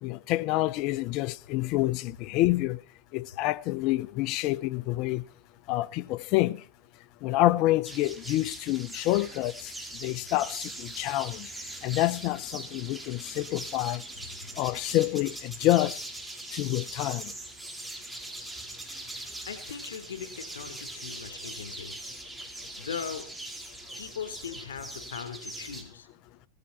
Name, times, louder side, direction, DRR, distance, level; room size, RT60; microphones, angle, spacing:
voice 1, 0.0-2.8 3.1-5.2 5.7-6.6 7.2-9.5 10.0-10.7 11.0-11.5 11.8-14.0 14.6-16.0 16.5-17.2, left 17 dB, 55° left, 1.0 m, -27 dB
sound 1, 7.8-25.8, right 2 dB, 5° right, 4.4 m, -41 dB
voice 2, 19.5-22.0 22.8-23.3 24.0-26.1, left 7 dB, 85° left, 4.1 m, -39 dB
18.0 x 15.5 x 4.4 m
hypercardioid pair, 95°, 0 cm